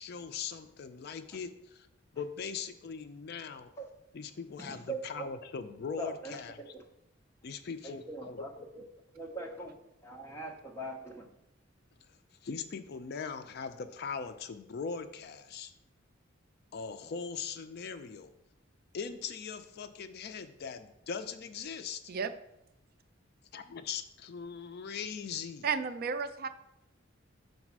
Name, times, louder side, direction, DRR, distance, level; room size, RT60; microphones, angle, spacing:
voice 1, 0.0-1.9 2.1-3.7 4.1-6.7 7.4-8.4 12.4-15.7 16.7-18.3 18.9-22.0 23.5-25.7, left 6 dB, 50° left, 9 dB, 0.4 m, -40 dB
voice 2, 4.6-5.2 6.0-6.8 7.8-8.5 9.1-9.7 10.0-11.2, right 2 dB, 15° left, 0 dB, 0.9 m, -41 dB
voice 3, 25.6-26.5, right 6 dB, 50° right, 10 dB, 0.4 m, -32 dB
5.3 x 4.0 x 6.0 m, 0.85 s
head